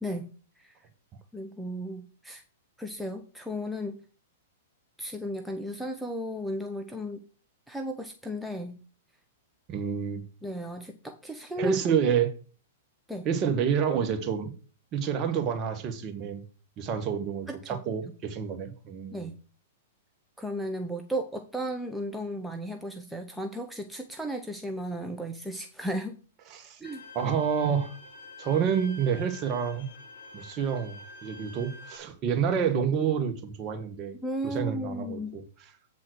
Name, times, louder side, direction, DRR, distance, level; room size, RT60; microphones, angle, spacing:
voice 1, 1.3-2.4 2.8-4.0 5.0-7.2 7.7-8.8 10.4-11.8 13.1-13.3 17.5-17.8 19.1-19.3 20.4-26.1 26.8-27.0 34.2-35.4, equal, 5° right, 0.8 m, -34 dB
voice 2, 9.7-10.2 11.6-12.3 13.2-14.5 14.9-16.4 16.8-19.2 26.5-26.8 27.1-27.9 28.4-29.9 30.3-34.1 34.4-35.4, right 7 dB, 35° right, 1.6 m, -28 dB
Bowed string instrument, 26.8-32.0, left 1 dB, 60° left, 1.8 m, -47 dB
7.6 x 4.2 x 6.5 m
hypercardioid pair, 110°, 0 cm